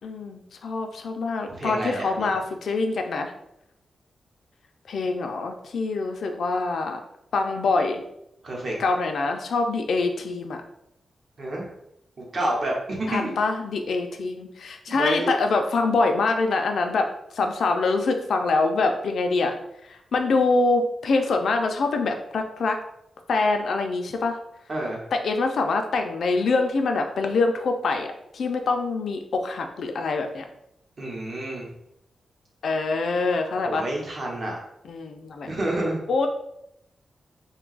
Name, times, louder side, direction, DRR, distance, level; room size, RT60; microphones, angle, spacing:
voice 1, 0.0-3.3 4.9-7.0 7.3-8.0 8.8-10.6 13.1-17.1 17.3-19.6 20.1-22.8 23.3-24.4 25.1-28.1 28.3-30.4 32.6-33.8 34.8-35.5 36.1-36.3, left 3 dB, 70° left, 4 dB, 0.4 m, -24 dB
voice 2, 1.5-2.3 8.4-8.7 11.4-11.7 12.2-13.3 14.9-15.4 24.7-25.0 31.0-31.7 33.7-34.6 35.5-36.0, right 1 dB, 45° right, -2 dB, 0.8 m, -28 dB
2.6 x 2.2 x 3.9 m, 0.78 s
wide cardioid pair, 160°, 0 cm